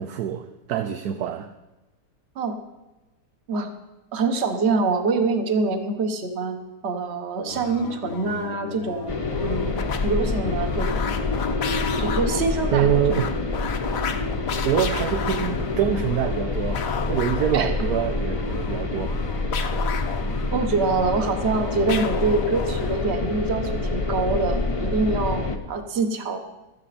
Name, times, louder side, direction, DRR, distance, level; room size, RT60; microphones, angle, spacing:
voice 1, 0.0-1.5 12.7-13.2 14.6-16.8 17.1-19.2, right 10 dB, 75° right, 8 dB, 1.2 m, -25 dB
voice 2, 4.1-6.6 6.8-9.1 9.4-9.7 10.0-11.0 12.0-13.2 17.5-17.7 20.5-26.4, right 3 dB, 40° right, 5 dB, 1.5 m, -25 dB
sound 1, 7.4-23.1, left 7 dB, 60° left, 1.3 m, -34 dB
sound 2, 9.1-25.6, left 3 dB, 25° left, 0.9 m, -27 dB
16.5 x 13.0 x 4.3 m, 1.1 s
omnidirectional pair, 1.8 m